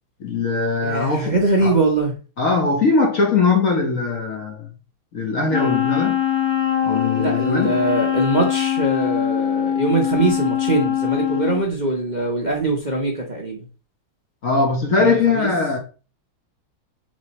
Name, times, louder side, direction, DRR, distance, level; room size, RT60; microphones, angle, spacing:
voice 1, 0.2-1.7 2.4-4.7 5.1-6.2 6.8-7.8 14.4-15.8, left 4 dB, 50° left, 1.3 m, -20 dB
voice 2, 0.8-2.1 7.1-13.6 15.0-15.5, right 2 dB, 30° right, 0.9 m, -22 dB
Wind instrument woodwind instrument, 5.5-11.6, left 10 dB, 15° left, 1.1 m, -22 dB
7.8 x 4.1 x 4.2 m
omnidirectional pair, 2.2 m